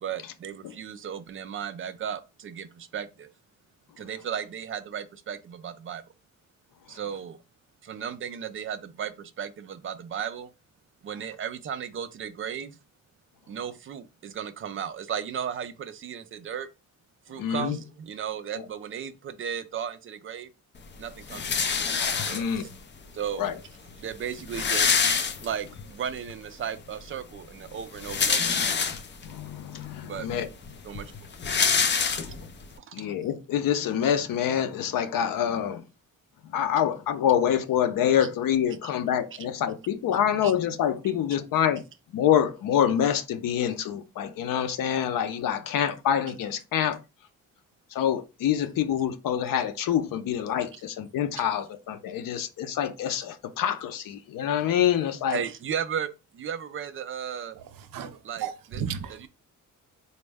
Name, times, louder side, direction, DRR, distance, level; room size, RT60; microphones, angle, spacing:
voice 1, 0.0-3.3 4.0-6.0 6.9-7.4 7.8-10.5 11.0-12.8 13.5-16.7 17.3-20.5 21.0-21.6 22.3-22.7 23.1-23.5 23.9-25.1 25.4-28.7 30.0-30.3 30.8-31.1 32.8-33.1 38.2-38.3 38.8-38.9 39.3-39.5 40.4-40.5 50.7-50.8 51.4-51.5 55.3-57.6 58.2-58.8 59.2-59.3, right 8 dB, 40° right, 0.4 m, -35 dB
voice 2, 17.4-17.8 22.3-22.6 23.4-23.5 29.2-30.5 32.9-35.8 36.5-41.8 42.1-47.0 47.9-55.4, left 9 dB, 85° left, 0.6 m, -26 dB
sound 1, 21.3-22.7 23.6-23.7 23.9-24.0 24.2-25.8 26.3-26.4 27.8-29.3 29.9-30.0 30.3-32.6, left 6 dB, 35° left, 0.4 m, -26 dB
voice 3, 57.6-59.3, right 8 dB, 85° right, 0.6 m, -35 dB
4.2 x 2.0 x 3.4 m
wide cardioid pair, 165°, 32 cm